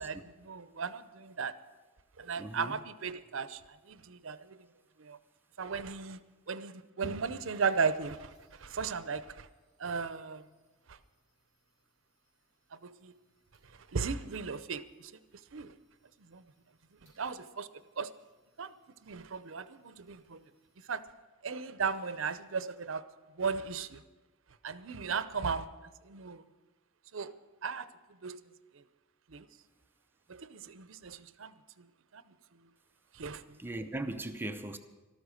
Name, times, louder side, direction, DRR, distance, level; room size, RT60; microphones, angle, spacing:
voice 1, 0.0-1.5 2.2-3.6 3.9-4.6 5.0-5.2 5.6-6.2 6.5-9.5 9.8-10.4 10.9-11.0 12.8-13.1 13.9-15.1 15.5-15.7 16.3-16.4 17.0-17.7 18.0-18.1 18.6-18.7 19.0-20.5 20.9-21.0 21.4-23.0 23.4-24.0 24.6-25.7 26.0-26.4 27.1-27.3 27.6-27.9 28.2-28.4 28.7-28.8 29.3-29.5 30.3-31.9 32.1-32.2 33.1-33.6, right 5 dB, 70° right, 14 dB, 0.7 m, -36 dB
voice 2, 2.4-2.8 33.6-34.8, right 1 dB, 10° right, 7 dB, 0.6 m, -38 dB
sound 1, 7.0-21.0, right 1 dB, 60° left, 5.9 m, -59 dB
13.5 x 13.0 x 6.4 m, 1.3 s
head